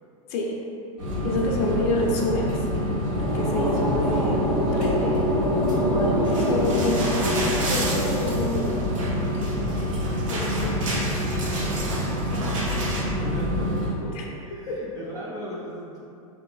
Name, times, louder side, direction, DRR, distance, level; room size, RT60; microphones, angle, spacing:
sound 1, 1.0-13.9, equal, 45° right, 1.2 m, -27 dB
voice 1, 1.2-2.7 3.2-5.2 5.9-8.8 10.3-11.4 14.1-14.3 14.7-14.8, left 2 dB, 45° left, -1 dB, 0.6 m, -28 dB
sound 2, 2.8-9.9, equal, 85° right, 1.5 m, -26 dB
sound 3, 6.2-13.0, right 2 dB, 60° right, 0.7 m, -32 dB
voice 2, 12.3-14.2 14.4-16.0, equal, 20° right, -6 dB, 0.5 m, -36 dB
3.7 x 2.8 x 2.3 m, 2.6 s
hypercardioid pair, 105°, 19 cm